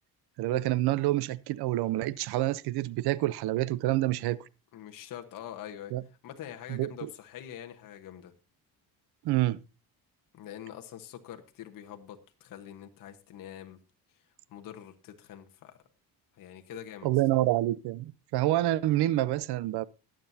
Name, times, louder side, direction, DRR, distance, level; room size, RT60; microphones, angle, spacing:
voice 1, 0.4-4.4 5.9-6.0 6.7-7.1 9.2-9.6 17.0-19.9, right 15 dB, 75° right, 0.6 m, -27 dB
voice 2, 4.7-5.9 6.2-8.3 10.3-13.8 14.5-15.7 16.3-17.1, left 10 dB, 55° left, 1.3 m, -44 dB
20.5 x 7.6 x 2.7 m
cardioid pair, 160°, 39 cm